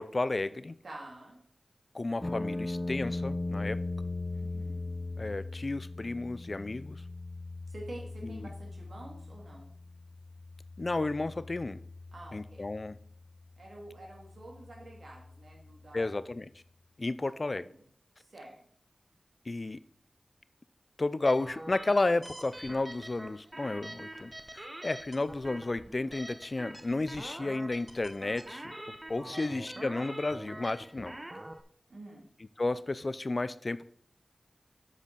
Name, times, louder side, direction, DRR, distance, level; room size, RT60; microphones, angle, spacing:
voice 1, 0.0-0.7 1.9-3.8 5.2-7.0 8.2-8.5 10.8-11.8 12.3-13.0 15.9-16.5 17.0-17.7 19.5-19.8 21.0-31.2 32.6-33.8, left 2 dB, 50° left, 15 dB, 0.5 m, -32 dB
voice 2, 0.8-1.4 4.3-4.8 7.7-9.7 12.1-12.7 13.6-16.1 17.2-17.9 18.2-18.6 29.3-29.9 31.9-32.3, right 1 dB, 75° right, -1 dB, 2.6 m, -48 dB
sound 1, 2.2-16.2, left 2 dB, 30° left, 1.0 m, -40 dB
sound 2, 21.3-31.6, right 1 dB, 25° right, 0.7 m, -45 dB
8.3 x 5.2 x 5.4 m, 0.62 s
cardioid pair, 40°, 0 cm